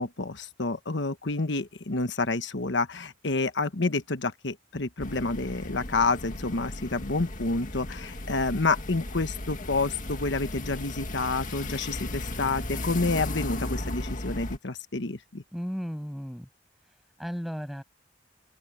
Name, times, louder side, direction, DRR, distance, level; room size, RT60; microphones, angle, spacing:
voice 1, 0.0-15.4, left 3 dB, 70° left, 1.3 m, -29 dB
sound 1, 5.0-14.6, left 1 dB, 45° left, 2.1 m, -36 dB
voice 2, 15.5-16.5 16.9-17.8, equal, ahead, 7.6 m, -35 dB
open air
head